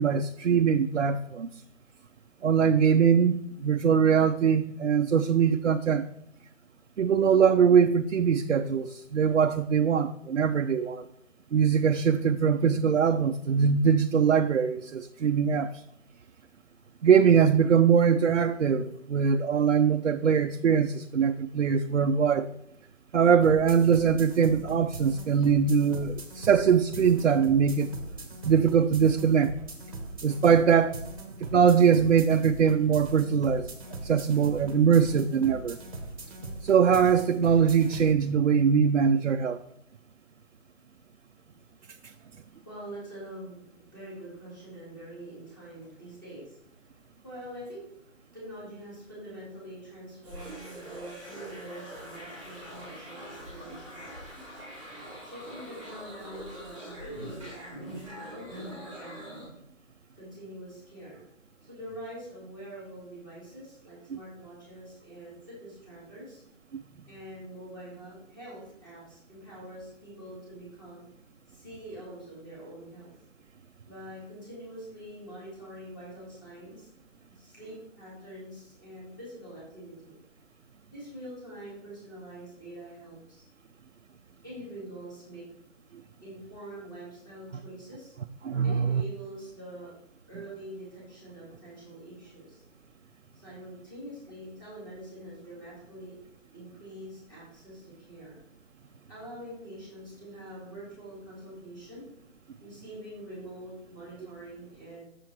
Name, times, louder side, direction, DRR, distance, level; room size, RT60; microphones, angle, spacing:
voice 1, 0.0-1.5 2.4-6.1 7.0-11.1 11.5-15.8 17.0-22.5 23.1-27.9 28.4-29.5 30.2-31.0 31.5-33.7 34.0-35.8 36.6-39.6 42.0-42.1 88.4-89.0, right 7 dB, 65° right, 6 dB, 0.5 m, -22 dB
sound 1, 23.4-38.1, right 2 dB, 25° right, 1.0 m, -40 dB
voice 2, 42.2-47.9 48.3-54.2 55.2-59.4 60.1-61.2 61.6-66.4 67.1-71.0 71.5-73.1 73.9-76.9 77.3-80.2 80.9-83.4 84.4-85.4 86.2-88.1 88.6-89.9 90.3-92.6 93.3-96.1 96.5-98.4 99.1-102.1 102.6-105.0, right 1 dB, 15° left, -7 dB, 2.5 m, -45 dB
sound 2, 50.2-59.5, equal, ahead, 2.6 m, -43 dB
6.9 x 5.8 x 4.4 m, 0.76 s
hypercardioid pair, 175°, 39 cm